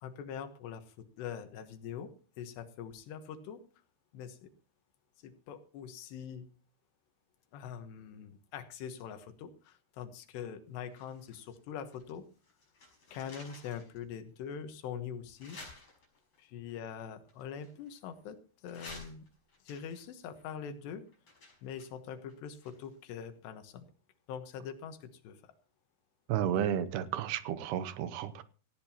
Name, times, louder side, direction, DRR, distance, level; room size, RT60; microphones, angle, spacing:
voice 1, 0.0-3.6 4.1-4.5 5.2-6.5 7.5-12.3 13.1-15.6 16.4-19.3 19.7-21.1 21.6-23.9 24.3-25.5, left 8 dB, 90° left, 9 dB, 3.5 m, -43 dB
sound 1, 10.9-12.2 12.4-14.0 14.5-14.6 15.4-16.4 17.3-18.2 18.7-23.1 23.3-23.4, left 2 dB, 35° left, 6.4 m, -53 dB
voice 2, 26.3-28.4, right 10 dB, 85° right, 13 dB, 2.9 m, -32 dB
18.0 x 15.5 x 2.9 m, 0.37 s
omnidirectional pair, 4.7 m